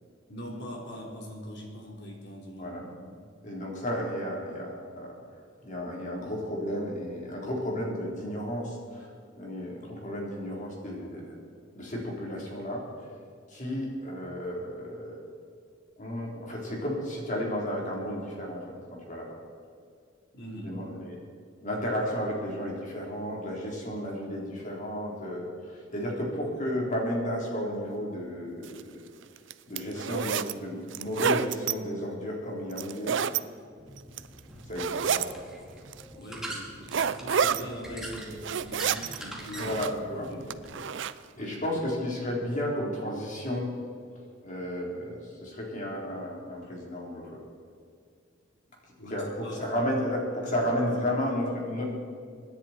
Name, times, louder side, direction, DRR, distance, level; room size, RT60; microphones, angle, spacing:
voice 1, 0.3-3.2 20.3-20.8 36.2-40.5 41.3-41.6 49.0-49.6, equal, 60° left, -1 dB, 3.6 m, -42 dB
voice 2, 3.4-5.2 5.6-9.1 9.4-11.4 11.7-12.9 13.5-15.2 16.0-19.3 20.6-21.2 21.6-29.1 29.7-33.2 34.7-35.3 39.5-40.3 41.4-43.7 44.4-47.4 49.1-51.8, equal, 40° left, -2 dB, 3.8 m, -33 dB
sound 1, 28.6-28.8 29.4-30.5 30.9-31.7 32.7-33.4 34.0-34.4 34.8-35.3 35.9-36.0 36.9-37.6 38.2-39.2 39.4-40.0 40.5-41.1, right 7 dB, 65° right, 0.5 m, -28 dB
sound 2, 33.8-40.7, right 1 dB, 5° right, 2.6 m, -43 dB
25.5 x 10.5 x 4.5 m, 2.3 s
head